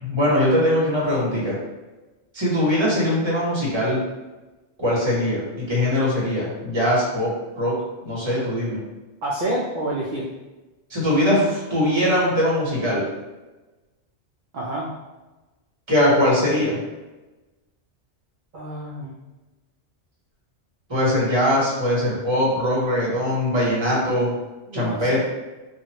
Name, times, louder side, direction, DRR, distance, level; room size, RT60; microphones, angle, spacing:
voice 1, 0.0-1.6 2.3-4.0 4.8-7.3 7.6-7.7 8.0-8.8 10.9-13.0 15.9-16.8 20.9-24.4 24.7-25.2, left 1 dB, 25° right, -6 dB, 1.0 m, -21 dB
voice 2, 9.2-10.3 14.5-14.9 18.5-19.2 24.7-25.2, right 1 dB, 55° right, -5 dB, 0.6 m, -28 dB
3.0 x 2.4 x 2.8 m, 1.1 s
omnidirectional pair, 1.1 m